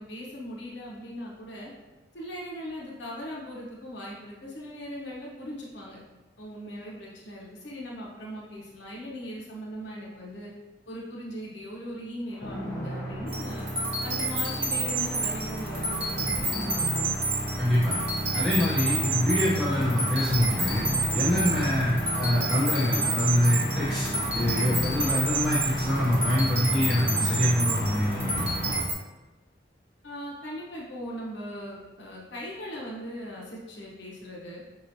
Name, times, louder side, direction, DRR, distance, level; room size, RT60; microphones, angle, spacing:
voice 1, 0.0-1.7 2.1-6.0 6.4-10.5 10.9-13.7 14.0-17.1 30.0-34.6, equal, 75° left, -4 dB, 0.8 m, -39 dB
sound 1, 12.3-28.8, equal, 20° left, 1.1 m, -32 dB
sound 2, 13.3-28.9, right 2 dB, 30° right, 1.1 m, -30 dB
voice 2, 17.6-18.0 18.3-28.7, left 1 dB, ahead, -9 dB, 0.6 m, -25 dB
5.6 x 3.0 x 2.7 m, 1.1 s
head